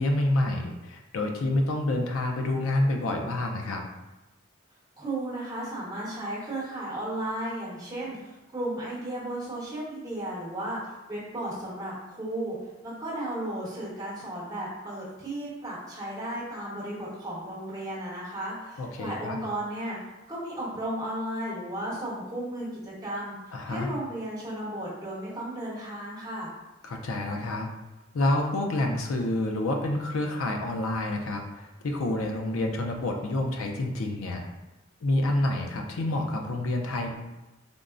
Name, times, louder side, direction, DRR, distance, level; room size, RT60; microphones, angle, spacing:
voice 1, 0.0-3.8 18.8-19.4 23.5-23.9 26.8-27.7 28.1-34.5 35.0-37.1, left 1 dB, 80° left, 3 dB, 0.4 m, -28 dB
voice 2, 5.0-12.6 12.8-20.0 20.3-23.4 23.7-26.5, right 1 dB, 20° right, -8 dB, 1.0 m, -34 dB
3.5 x 2.0 x 2.4 m, 1.0 s
head